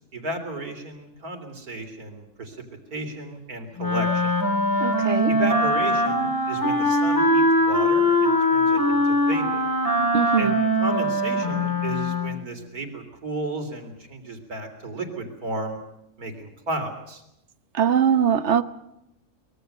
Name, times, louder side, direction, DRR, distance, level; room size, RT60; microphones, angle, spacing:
voice 1, 0.0-2.6 2.9-4.3 5.3-9.7 10.4-15.8 16.2-17.2, right 2 dB, 70° right, 4.0 m, -33 dB
Wind instrument woodwind instrument, 3.8-12.4, left 1 dB, 15° left, 3.5 m, -22 dB
voice 2, 4.8-5.3 10.1-10.5 17.8-18.6, right 8 dB, 50° right, 1.2 m, -21 dB
24.0 x 22.0 x 6.8 m
omnidirectional pair, 1.6 m